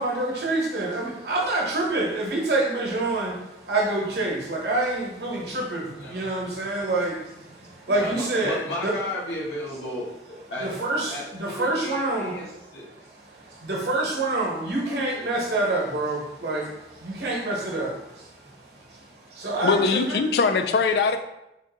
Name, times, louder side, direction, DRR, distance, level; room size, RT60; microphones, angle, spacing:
voice 1, 0.0-8.9 10.6-12.4 12.9-20.2, right 2 dB, 65° right, -2 dB, 1.0 m, -27 dB
voice 2, 5.9-6.9 7.7-10.7 11.1-12.9 14.6-15.4 18.4-18.8, left 1 dB, 80° left, -6 dB, 1.3 m, -35 dB
voice 3, 19.6-21.2, left 4 dB, 65° left, 9 dB, 0.3 m, -21 dB
3.7 x 2.6 x 3.8 m, 0.87 s
head